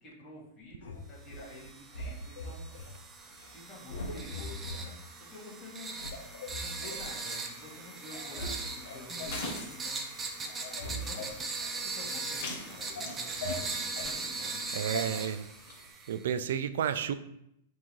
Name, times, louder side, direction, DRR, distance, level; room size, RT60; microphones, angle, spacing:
voice 1, 0.0-2.7 3.4-6.0 6.5-10.0 10.8-11.4 11.8-14.1 14.4-15.1, left 2 dB, 20° left, -8 dB, 1.7 m, -49 dB
sound 1, 0.8-1.5 1.9-2.9 3.3-3.5 3.9-4.8 5.4-5.5 6.0-7.1 7.7-7.8 8.1-8.6 8.8-9.5 9.9-10.2 10.4-12.3 12.6-14.2 14.9-15.1, left 1 dB, 80° left, 0.7 m, -41 dB
sound 2, 1.3-16.2, right 3 dB, 15° right, 0.5 m, -40 dB
sound 3, 8.2-15.9, left 2 dB, 50° left, 1.1 m, -46 dB
voice 2, 14.7-15.5 16.1-17.1, right 8 dB, 75° right, 12 dB, 0.3 m, -31 dB
3.7 x 2.8 x 4.6 m, 0.77 s
supercardioid pair, 150°, 0 cm